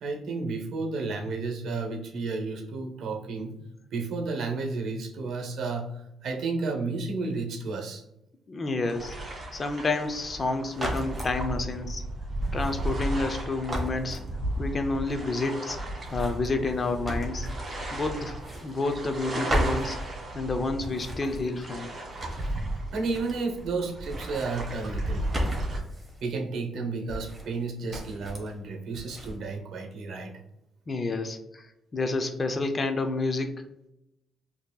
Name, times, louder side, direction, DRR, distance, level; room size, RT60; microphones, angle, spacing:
voice 1, 0.0-3.5 3.9-5.9 6.2-8.0 22.9-25.2 26.2-30.3, right 3 dB, 70° right, 3 dB, 0.8 m, -32 dB
voice 2, 8.5-9.2 9.5-12.0 12.5-14.2 14.6-15.8 16.1-17.5 17.9-20.0 20.3-21.9 30.9-31.7 31.9-33.6, left 3 dB, 35° left, 6 dB, 0.5 m, -29 dB
sound 1, 8.8-25.8, right 1 dB, 40° right, 1.4 m, -35 dB
sound 2, 10.7-11.4 12.4-13.4 13.7-14.7 16.0-17.9 18.2-19.2 19.5-20.5 20.8-22.6 22.9-23.8 24.0-26.2 27.1-27.6 27.9-28.5 28.9-29.4, right 1 dB, 15° right, 1.2 m, -35 dB
5.2 x 2.8 x 2.2 m, 0.85 s
cardioid pair, 90°, 0 cm